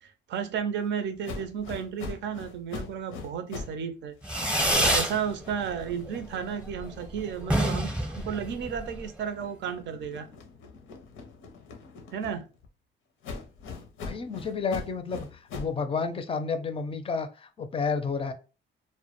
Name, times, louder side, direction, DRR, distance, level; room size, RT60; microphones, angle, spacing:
voice 1, 0.0-4.5 4.8-7.9 8.2-10.3 12.1-12.5, right 7 dB, 65° right, 8 dB, 0.5 m, -33 dB
sound 1, 1.2-3.8 4.1-8.9 9.3-12.7 13.2-15.8, left 4 dB, 85° left, 0.6 m, -43 dB
Fireworks, 4.2-5.2 5.5-6.1 6.4-6.5 6.7-6.8 7.1-7.2 7.4-9.0, equal, 5° right, 0.7 m, -26 dB
voice 2, 14.0-15.3 15.5-18.3, left 5 dB, 30° left, 8 dB, 0.4 m, -30 dB
2.1 x 2.1 x 2.9 m, 0.32 s
cardioid pair, 90°, 20 cm